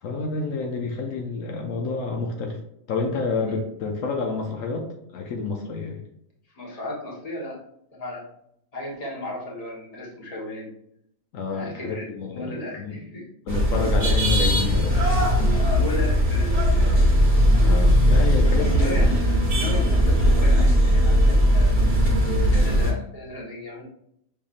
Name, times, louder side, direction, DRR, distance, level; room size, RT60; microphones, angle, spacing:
voice 1, 0.0-2.6 2.9-4.9 5.1-6.0 11.3-13.0 13.5-15.6 17.3-19.8, left 4 dB, 75° left, 2 dB, 1.0 m, -29 dB
voice 2, 6.5-7.6 7.9-8.3 8.7-10.7 11.5-12.0 12.3-13.3 15.5-16.5 18.6-22.0 22.3-23.8, left 1 dB, 30° left, -4 dB, 1.2 m, -35 dB
sound 1, 13.5-22.9, equal, 30° right, 0.9 m, -19 dB
5.4 x 3.4 x 2.5 m, 0.75 s
omnidirectional pair, 1.4 m